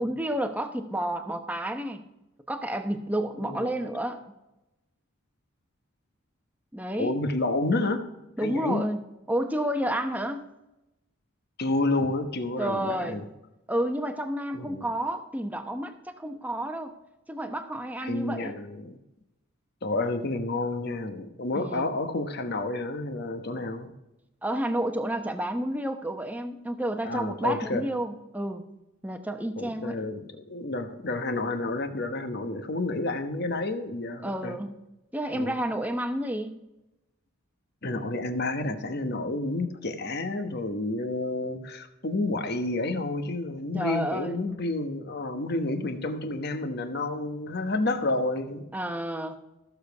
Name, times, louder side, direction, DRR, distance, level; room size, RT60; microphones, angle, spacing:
voice 1, 0.0-2.0 2.5-4.2 6.7-7.1 8.4-9.0 9.3-10.4 12.6-13.2 13.7-17.0 17.3-18.6 21.5-21.9 24.4-28.6 29.0-30.1 34.2-34.7 35.1-36.6 43.7-44.4 48.7-49.3, right 1 dB, 5° right, 7 dB, 0.8 m, -30 dB
voice 2, 3.4-3.7 7.0-8.1 8.4-8.8 11.6-13.3 14.5-14.9 18.0-19.0 19.8-23.9 27.0-27.9 29.6-34.6 35.3-35.6 37.8-48.7, left 2 dB, 50° left, 8 dB, 1.1 m, -30 dB
15.0 x 7.0 x 4.7 m, 0.95 s
head